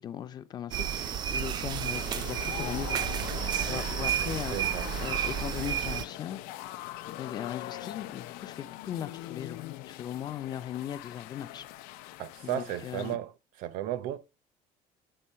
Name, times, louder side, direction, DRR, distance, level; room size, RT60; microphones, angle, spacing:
voice 1, 0.0-3.0 3.6-6.4 7.1-11.7 12.4-13.2, left 10 dB, 30° left, 0.5 m, -38 dB
sound 1, 0.7-6.0, right 10 dB, 30° right, 0.4 m, -31 dB
sound 2, 1.9-13.2, left 15 dB, 85° left, 0.6 m, -42 dB
voice 2, 4.5-4.9 12.2-14.2, right 12 dB, 65° right, 0.6 m, -35 dB
8.8 x 3.8 x 5.5 m
cardioid pair, 180°, 15 cm